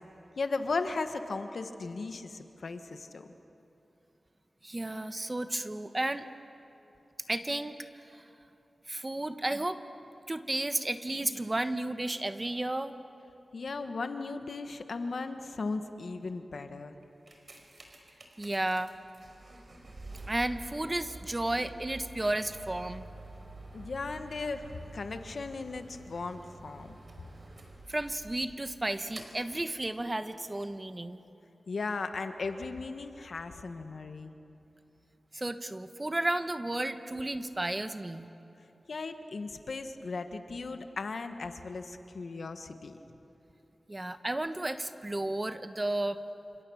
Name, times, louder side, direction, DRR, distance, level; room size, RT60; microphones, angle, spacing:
voice 1, 0.4-3.2 13.5-16.9 23.7-27.0 31.7-34.3 38.9-43.0, left 3 dB, 70° left, 8 dB, 1.5 m, -36 dB
voice 2, 4.6-6.3 7.3-7.8 8.1-8.2 8.9-9.8 10.3-13.0 18.4-18.9 20.3-23.0 27.9-31.2 35.3-38.3 43.9-46.2, right 1 dB, 25° right, 10 dB, 1.2 m, -33 dB
sound 1, 17.0-30.0 30.7-30.8, right 2 dB, 50° right, 4.6 m, -49 dB
28.5 x 27.0 x 7.2 m, 2.9 s
wide cardioid pair, 75°, 0 cm